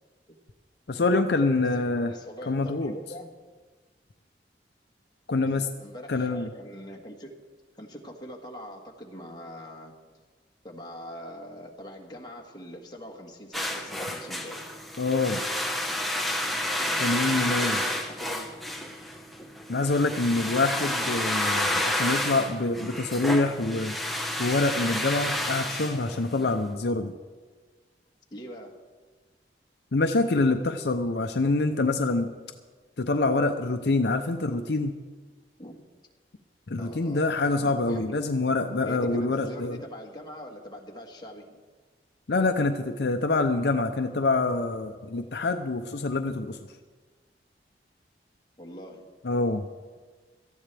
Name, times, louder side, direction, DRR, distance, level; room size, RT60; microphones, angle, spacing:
voice 1, 0.9-2.1 2.5-2.9 5.3-5.7 6.1-6.5 15.0-15.4 17.0-17.8 19.7-23.9 24.4-27.1 29.9-32.3 33.0-34.9 36.7-39.8 42.3-46.6 49.2-49.7, left 3 dB, 70° left, 7 dB, 0.6 m, -26 dB
voice 2, 1.9-3.3 5.4-7.3 7.8-9.9 10.6-14.7 16.8-18.6 26.2-26.5 28.3-28.7 35.6-35.8 36.8-38.1 38.8-41.6 48.6-49.0, equal, 25° left, 0 dB, 1.7 m, -42 dB
sound 1, 13.5-26.6, left 1 dB, ahead, 1.2 m, -30 dB
18.0 x 14.0 x 3.4 m, 1.4 s
head